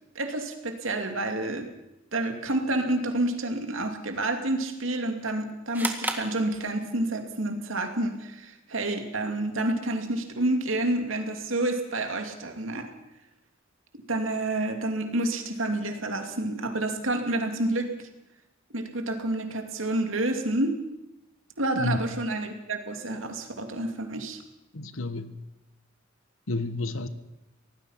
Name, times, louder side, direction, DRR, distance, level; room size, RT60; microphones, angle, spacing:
voice 1, 0.1-1.7 2.1-12.9 14.1-17.9 18.7-20.8 21.6-24.4, right 2 dB, 70° right, 2.7 m, -29 dB
sound 1, 5.7-7.2, right 2 dB, 10° right, 1.9 m, -33 dB
voice 2, 24.7-25.3 26.5-27.1, left 2 dB, 80° left, 1.4 m, -30 dB
25.0 x 18.5 x 5.8 m
head